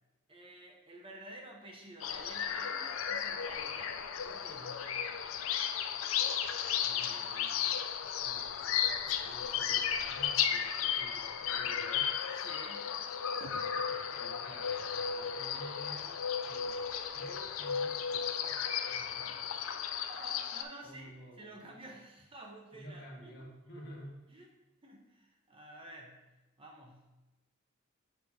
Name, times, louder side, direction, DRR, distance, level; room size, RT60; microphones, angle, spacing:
voice 1, 0.3-4.9 6.8-7.5 12.3-12.9 18.9-19.4 20.1-23.4 24.3-24.5 24.8-26.3 26.6-27.1, right 1 dB, 25° right, 0 dB, 0.9 m, -51 dB
sound 1, 2.0-20.6, left 8 dB, 85° left, 0.4 m, -34 dB
voice 2, 5.9-8.7 9.0-12.1 13.5-18.6 20.8-21.7 22.7-24.2, equal, 55° left, -2 dB, 1.5 m, -52 dB
7.1 x 5.8 x 2.8 m, 1.0 s
head